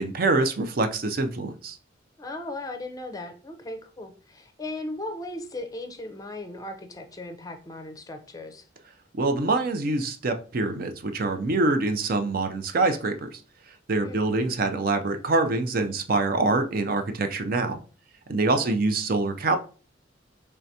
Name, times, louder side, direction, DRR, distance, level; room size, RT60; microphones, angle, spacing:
voice 1, 0.0-1.8 9.1-13.4 13.9-17.8 18.3-19.6, right 3 dB, 50° right, 7 dB, 0.5 m, -25 dB
voice 2, 2.2-8.7 14.0-14.3 18.5-18.8, left 2 dB, 20° left, 6 dB, 0.5 m, -37 dB
4.6 x 3.3 x 2.7 m, 0.37 s
head